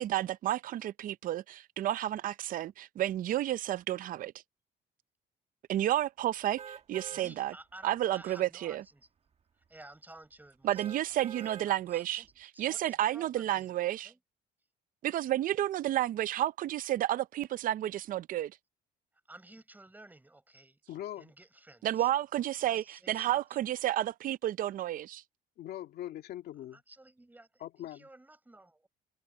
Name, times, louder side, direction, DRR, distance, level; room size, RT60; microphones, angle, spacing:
voice 1, 0.0-4.3 5.7-7.5 7.8-8.8 10.6-14.1 15.0-18.5 21.8-25.2, right 13 dB, 55° right, 0.5 m, -31 dB
sound 1, 6.6-7.3 7.8-7.9 10.7-11.7 12.2-12.3, right 7 dB, 35° right, 1.6 m, -46 dB
voice 2, 7.1-9.1 9.7-11.6 11.8-12.3 12.5-14.2 19.3-20.8 21.2-22.1 22.7-23.6 26.7-28.9, right 2 dB, 10° right, 5.2 m, -54 dB
voice 3, 20.9-21.3 25.6-26.8 27.6-28.1, left 12 dB, 70° left, 2.3 m, -41 dB
cardioid pair, 110°, 17 cm